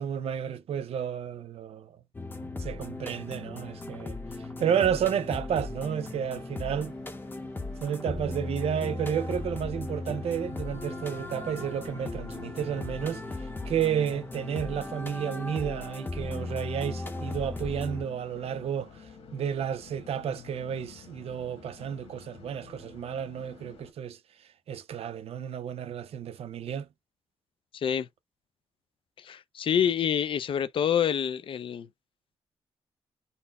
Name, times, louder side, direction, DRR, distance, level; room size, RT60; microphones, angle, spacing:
voice 1, 0.0-2.0 2.6-4.2 4.6-6.9 7.8-13.2 13.6-18.9 19.3-24.2 24.7-26.9, right 8 dB, 80° right, 0.6 m, -31 dB
sound 1, 2.1-18.0, left 2 dB, 20° left, 0.7 m, -37 dB
ambi House of Blues on wall, 6.1-23.9, left 6 dB, 75° left, 1.3 m, -52 dB
voice 2, 27.7-28.1 29.2-31.9, left 8 dB, 60° left, 0.4 m, -27 dB
4.2 x 2.1 x 4.0 m
wide cardioid pair, 130°, 10 cm